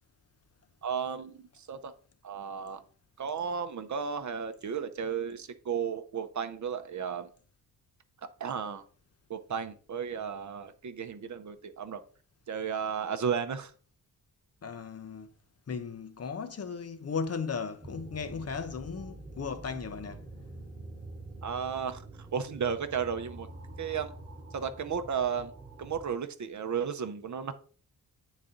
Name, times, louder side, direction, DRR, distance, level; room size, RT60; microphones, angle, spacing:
voice 1, 0.8-1.9 2.2-2.8 3.2-7.3 8.4-8.8 9.3-12.0 12.5-13.7 21.4-23.5 23.8-24.1 24.5-25.5 25.8-27.5, right 7 dB, 50° right, 0.6 m, -34 dB
voice 2, 14.6-15.3 15.7-20.3, left 5 dB, 40° left, 0.6 m, -36 dB
sound 1, 17.8-26.1, right 2 dB, 20° right, 1.2 m, -46 dB
8.9 x 4.1 x 3.7 m
wide cardioid pair, 160°, 37 cm